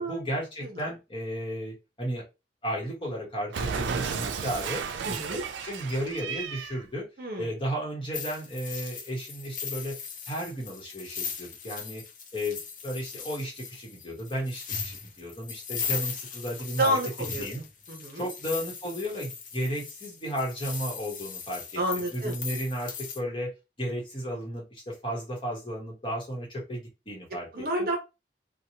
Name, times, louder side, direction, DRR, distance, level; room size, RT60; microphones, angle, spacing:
voice 1, 0.0-2.2 2.6-7.1 7.4-10.0 10.3-12.0 12.3-17.0 17.4-17.6 18.1-23.5 23.8-27.9, equal, 30° left, -1 dB, 1.0 m, -34 dB
voice 2, 0.6-0.9 5.0-5.4 7.2-7.5 16.8-17.5 17.9-18.3 21.8-22.4 27.5-28.0, right 1 dB, 50° right, 3 dB, 0.7 m, -29 dB
Cat, 3.5-6.8, right 6 dB, 85° right, 0.4 m, -33 dB
sound 1, 8.1-23.2, left 6 dB, 45° left, 0.6 m, -38 dB
2.9 x 2.2 x 2.8 m, 0.26 s
head